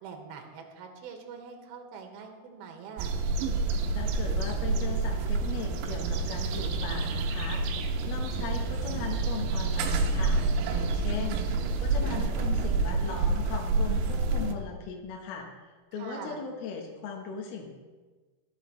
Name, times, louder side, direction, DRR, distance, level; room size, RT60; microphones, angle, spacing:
voice 1, 0.0-3.1 11.3-12.2 16.0-16.4, right 5 dB, 65° right, 3 dB, 2.7 m, -44 dB
sound 1, 3.0-14.5, right 3 dB, 80° right, 2.4 m, -28 dB
voice 2, 3.9-7.6 8.1-10.4 10.7-11.5 11.8-17.7, left 6 dB, 75° left, 1 dB, 2.4 m, -38 dB
23.5 x 8.0 x 3.2 m, 1.3 s
omnidirectional pair, 5.9 m